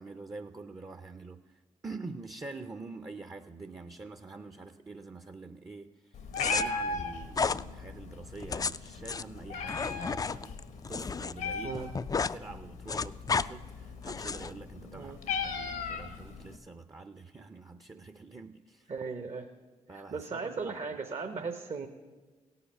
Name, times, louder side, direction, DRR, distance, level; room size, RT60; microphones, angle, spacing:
voice 1, 0.0-10.5 10.9-11.8 12.3-15.2 15.4-18.9 19.9-20.9 21.4-21.5, right 3 dB, 25° right, 9 dB, 0.6 m, -46 dB
Meow, 6.1-16.6, left 4 dB, 80° left, 1.0 m, -38 dB
sound 1, 6.3-6.6 7.3-7.6 8.4-11.3 11.6-12.4 12.7-13.5 14.0-14.5, left 5 dB, 25° left, 0.3 m, -32 dB
voice 2, 11.6-12.0 15.0-15.2 18.9-19.5 19.9-21.9, right 4 dB, 50° right, 5 dB, 0.9 m, -37 dB
17.0 x 5.7 x 5.4 m, 1.3 s
hypercardioid pair, 40°, 14 cm